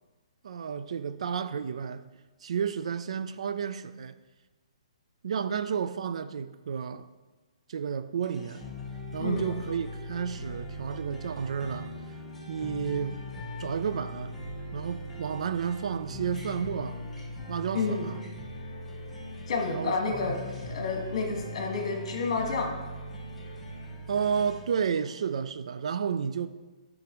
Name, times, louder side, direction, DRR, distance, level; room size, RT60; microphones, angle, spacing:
voice 1, 0.4-2.0 2.4-4.2 5.2-7.1 7.7-8.6 9.1-11.9 12.5-13.2 13.6-14.3 14.7-17.0 17.5-18.2 19.7-20.4 24.1-26.5, right 7 dB, 60° right, 0.4 m, -31 dB
sound 1, 8.2-24.6, left 1 dB, 5° left, 1.1 m, -40 dB
voice 2, 9.2-9.5 17.7-18.1 19.5-20.4 20.6-22.7, left 4 dB, 55° left, 1.6 m, -30 dB
9.4 x 5.0 x 3.0 m
hypercardioid pair, 160°, 4 cm